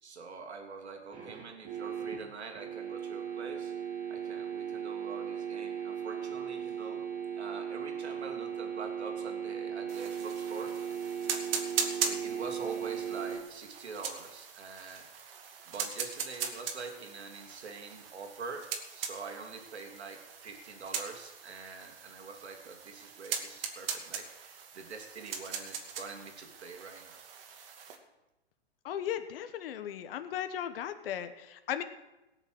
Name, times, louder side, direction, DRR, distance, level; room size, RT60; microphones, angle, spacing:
voice 1, 0.0-3.7 4.1-7.0 7.4-10.8 12.1-15.1 15.7-27.2, right 4 dB, 80° right, 3 dB, 2.9 m, -45 dB
sound 1, 1.1-13.4, right 7 dB, 25° right, 3.3 m, -37 dB
sound 2, 9.9-28.0, right 7 dB, 60° right, 2.4 m, -40 dB
voice 2, 28.8-31.8, left 10 dB, 60° left, 10 dB, 1.2 m, -36 dB
17.5 x 6.8 x 7.8 m, 1.0 s
hypercardioid pair, 120°, 33 cm